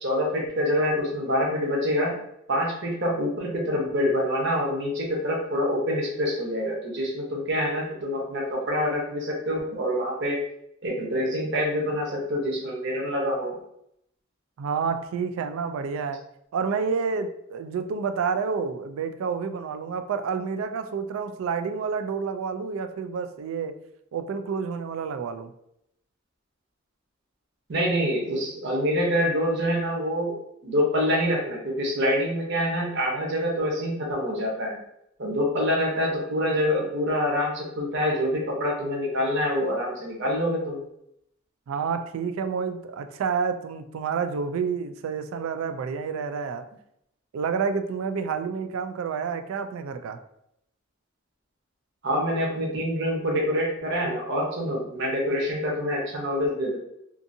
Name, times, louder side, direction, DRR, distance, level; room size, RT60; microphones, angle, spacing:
voice 1, 0.0-2.2 2.5-10.4 10.8-13.6 27.7-30.3 30.6-34.8 35.2-40.8 52.0-56.8, equal, 60° right, -1 dB, 0.8 m, -26 dB
voice 2, 14.6-16.2 16.5-23.8 24.1-25.5 41.7-46.7 47.3-50.2, right 5 dB, 85° right, 9 dB, 0.3 m, -29 dB
2.5 x 2.5 x 2.6 m, 0.77 s
head